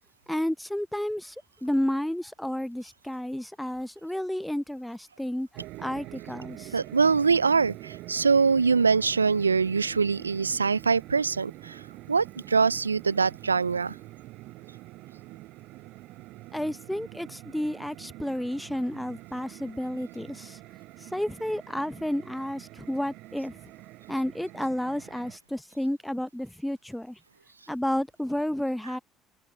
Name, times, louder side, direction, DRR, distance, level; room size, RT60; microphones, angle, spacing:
voice 1, 0.3-1.3 1.6-5.5 5.8-6.8 16.5-20.6 21.0-23.6 24.1-27.2 27.7-29.0, left 1 dB, 5° left, 1.1 m, -31 dB
sound 1, 5.5-25.4, right 19 dB, 60° right, 7.8 m, -45 dB
voice 2, 6.7-11.8 12.1-14.0, right 5 dB, 85° right, 0.4 m, -23 dB
figure-of-eight pair, 55°, 0 cm